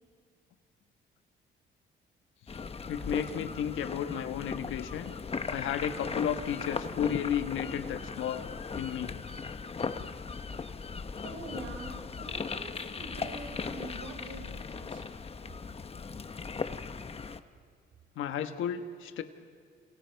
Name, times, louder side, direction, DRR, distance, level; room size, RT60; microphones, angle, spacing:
sound 1, 2.5-17.4, left 5 dB, 30° left, 1.0 m, -38 dB
voice 1, 2.9-5.1 5.5-9.1 18.2-19.2, left 9 dB, 80° left, 8 dB, 1.4 m, -33 dB
voice 2, 11.2-15.1, right 2 dB, 75° right, 3 dB, 4.8 m, -44 dB
30.0 x 28.0 x 4.7 m, 2.1 s
cardioid pair, 90°, 20 cm